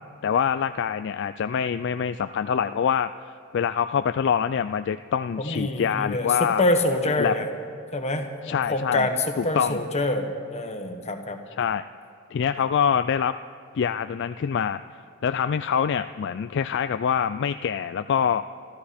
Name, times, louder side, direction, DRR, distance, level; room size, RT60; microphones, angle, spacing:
voice 1, 0.2-3.1 3.5-6.6 7.2-7.3 8.4-9.1 9.4-9.8 11.6-11.8 12.3-13.4 13.7-14.8 15.2-18.4, left 7 dB, 55° left, 11 dB, 0.3 m, -25 dB
voice 2, 5.4-7.5 7.9-8.3 8.7-11.4, left 2 dB, 30° left, 5 dB, 1.3 m, -25 dB
25.5 x 13.5 x 4.3 m, 2.5 s
head